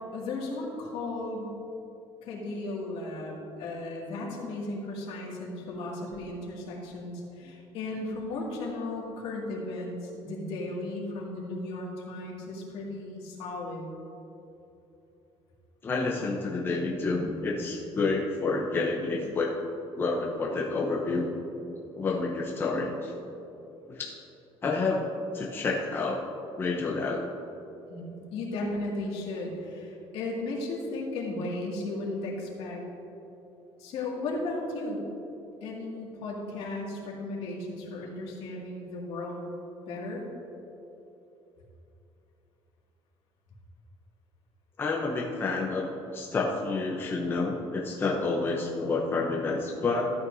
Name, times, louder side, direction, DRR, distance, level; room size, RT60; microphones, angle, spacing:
voice 1, 0.0-1.5 2.2-13.9 27.9-32.8 33.8-35.1 35.6-39.4 39.9-40.2, left 2 dB, 70° left, -4 dB, 2.3 m, -35 dB
voice 2, 15.8-19.5 20.0-21.3 21.9-23.1 23.9-24.1 24.6-25.0 25.3-26.2 26.6-27.2 44.8-45.9 46.1-50.1, left 3 dB, 20° left, -3 dB, 0.8 m, -29 dB
13.5 x 9.0 x 2.7 m, 3.0 s
cardioid pair, 160°, 10 cm